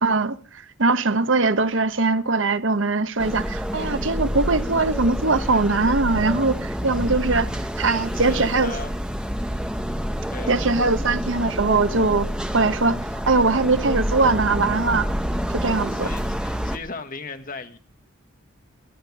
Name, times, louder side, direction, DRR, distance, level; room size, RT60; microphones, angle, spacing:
voice 1, 0.0-7.5 7.8-8.7 10.5-12.3 12.5-13.0 13.3-15.1 15.5-16.1, right 3 dB, 75° right, 1.1 m, -21 dB
sound 1, 3.2-16.8, equal, 5° right, 1.1 m, -28 dB
voice 2, 6.9-7.6 8.1-9.0 10.3-10.7 15.7-17.8, left 3 dB, 45° left, 1.6 m, -38 dB
24.0 x 10.5 x 4.9 m
head